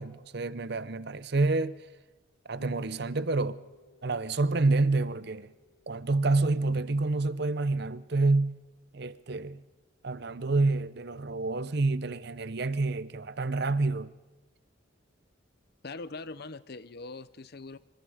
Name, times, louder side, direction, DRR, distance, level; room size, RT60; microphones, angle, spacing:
voice 1, 0.0-1.8 2.5-3.6 4.0-5.5 5.9-8.6 8.9-9.6 10.0-14.1, right 3 dB, 55° right, 0.7 m, -28 dB
Electric guitar / Bass guitar, 2.6-9.0, left 3 dB, 80° left, 2.5 m, -59 dB
voice 2, 15.8-17.8, left 3 dB, 50° left, 0.7 m, -42 dB
25.5 x 25.5 x 5.0 m
head